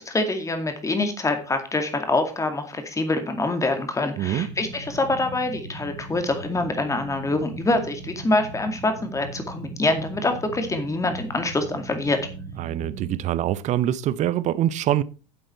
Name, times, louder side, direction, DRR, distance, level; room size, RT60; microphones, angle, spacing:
voice 1, 0.0-12.2, left 2 dB, 15° left, 2.3 m, -25 dB
voice 2, 4.2-4.5 12.6-15.0, right 12 dB, 35° right, 0.7 m, -24 dB
sound 1, 4.4-13.2, right 4 dB, 55° right, 4.1 m, -39 dB
9.6 x 7.8 x 4.3 m
figure-of-eight pair, 80°, 21 cm